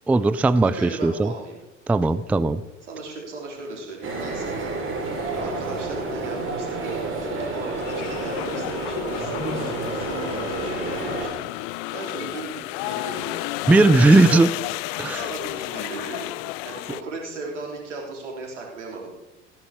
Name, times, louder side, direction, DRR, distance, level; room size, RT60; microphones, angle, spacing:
voice 1, 0.1-1.3 1.9-2.6 13.7-14.6 15.0-15.2, right 2 dB, 5° right, 15 dB, 0.4 m, -17 dB
voice 2, 0.6-1.6 2.8-4.8 5.3-11.4 11.9-13.4 15.0-16.3 16.6-19.1, right 3 dB, 85° right, -1 dB, 3.6 m, -37 dB
sound 1, 4.0-11.3, right 3 dB, 35° right, 4.3 m, -30 dB
sound 2, 7.4-17.0, left 18 dB, 60° left, 0.5 m, -32 dB
16.0 x 10.5 x 3.6 m, 1.1 s
hypercardioid pair, 70°, 35 cm